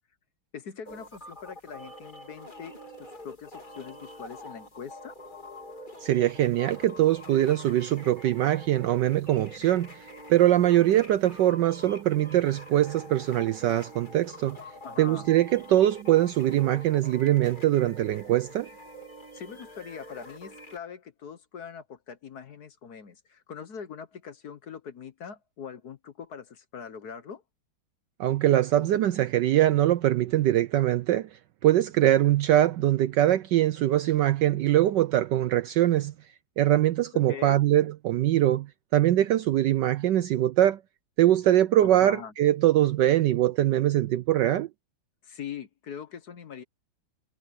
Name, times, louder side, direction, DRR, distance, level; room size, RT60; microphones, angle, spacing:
voice 1, 0.5-2.7 3.2-5.2 14.8-15.3 19.3-27.4 37.3-37.6 41.8-42.3 45.2-46.6, left 7 dB, 55° left, 1.5 m, -42 dB
sound 1, 0.8-20.8, equal, 20° left, 3.2 m, -46 dB
voice 2, 6.0-10.0 10.3-14.6 15.0-18.7 28.2-31.3 31.6-36.1 36.6-38.7 38.9-40.8 41.2-44.7, right 13 dB, 70° right, 1.1 m, -22 dB
omnidirectional pair, 2.3 m